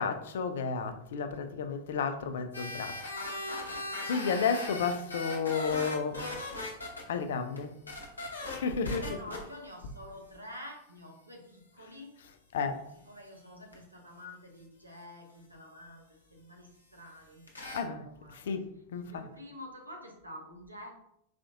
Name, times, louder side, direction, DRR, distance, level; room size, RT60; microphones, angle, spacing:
voice 1, 0.0-3.0 4.1-6.2 7.1-7.7 8.5-9.4 12.5-12.8 17.7-18.0 18.3-19.3, left 5 dB, 60° left, 0.3 m, -32 dB
sound 1, 2.5-7.0 7.6-7.7 7.9-8.5 8.9-9.4 13.7-13.8 17.5-17.8, left 2 dB, 80° left, 0.7 m, -38 dB
voice 2, 8.6-12.2 13.1-18.5 18.9-20.9, left 1 dB, 85° right, 0.7 m, -48 dB
4.2 x 2.4 x 2.4 m
figure-of-eight pair, 90°, 0 cm